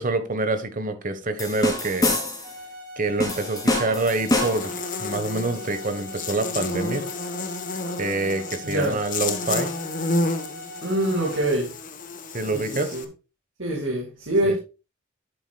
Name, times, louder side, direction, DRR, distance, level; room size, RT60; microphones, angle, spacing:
voice 1, 0.0-2.2 3.0-7.1 8.0-9.7 12.3-13.0 14.4-14.6, right 2 dB, 40° right, 1.3 m, -26 dB
sound 1, 1.4-2.6 3.2-4.8, left 1 dB, 20° left, 2.8 m, -25 dB
sound 2, 2.4-11.4, left 1 dB, 25° right, 4.7 m, -41 dB
Buzz, 4.0-13.0, left 3 dB, 40° left, 1.1 m, -31 dB
voice 2, 8.6-9.0 10.8-11.8 12.5-13.0 13.6-14.6, right 1 dB, 75° right, 2.2 m, -25 dB
11.0 x 8.0 x 2.4 m
head